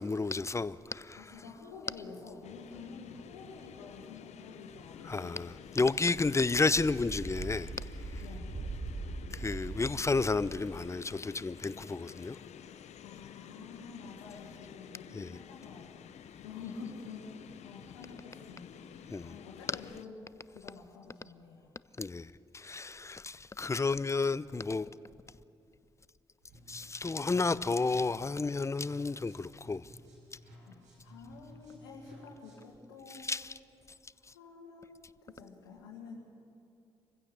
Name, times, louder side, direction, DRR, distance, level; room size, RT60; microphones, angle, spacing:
voice 1, 0.0-1.2 5.0-7.7 9.3-12.4 15.1-15.3 19.1-19.4 22.0-22.3 22.5-24.9 26.7-29.8 33.2-33.5, left 3 dB, 20° left, 0.6 m, -31 dB
voice 2, 1.2-5.8 8.2-8.4 13.0-15.9 16.3-20.2 20.5-21.7 30.6-33.3 34.2-36.2, left 4 dB, 85° left, 2.0 m, -49 dB
sound 1, 2.4-20.1, left 9 dB, 60° left, 0.7 m, -51 dB
sound 2, 5.0-11.0 11.5-11.6, right 2 dB, 35° right, 2.7 m, -42 dB
sound 3, 26.4-32.8, equal, 75° right, 5.5 m, -56 dB
25.5 x 15.5 x 6.8 m
hypercardioid pair, 45°, 13 cm